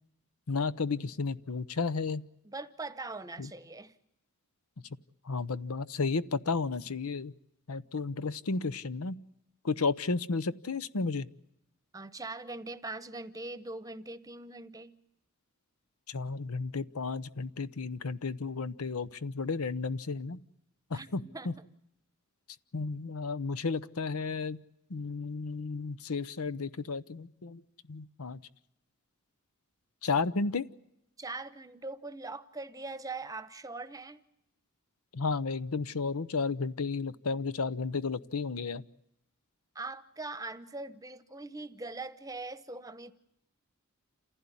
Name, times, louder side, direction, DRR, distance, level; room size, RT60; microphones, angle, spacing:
voice 1, 0.5-2.2 3.4-3.5 5.3-7.3 7.7-9.1 9.6-11.3 16.1-20.4 20.9-21.5 22.7-24.6 24.9-27.6 27.9-28.4 30.0-30.6 35.1-38.8, left 4 dB, 85° left, 15 dB, 0.8 m, -33 dB
voice 2, 2.4-3.9 11.9-15.0 20.9-21.6 31.2-34.2 39.7-43.1, right 3 dB, 15° right, 13 dB, 0.9 m, -41 dB
28.0 x 15.5 x 9.9 m, 0.83 s
head